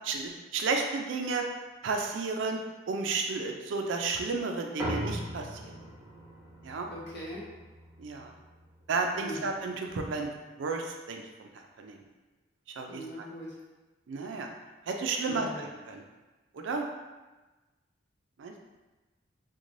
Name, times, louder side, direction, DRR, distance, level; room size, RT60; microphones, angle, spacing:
voice 1, 0.1-1.4 1.8-2.6 2.9-5.7 6.6-6.9 8.0-8.3 8.9-10.3 10.6-11.2 11.8-12.0 12.8-13.0 14.1-14.5 14.9-16.0 16.5-16.8 18.4-18.6, right 4 dB, 75° right, 3 dB, 0.4 m, -32 dB
pno thump, 4.8-9.5, right 1 dB, 15° right, 0.8 m, -40 dB
voice 2, 6.9-7.4 9.2-9.5 12.9-13.5 15.2-15.7, equal, 60° left, -6 dB, 0.9 m, -40 dB
3.0 x 2.2 x 2.5 m, 1.2 s
head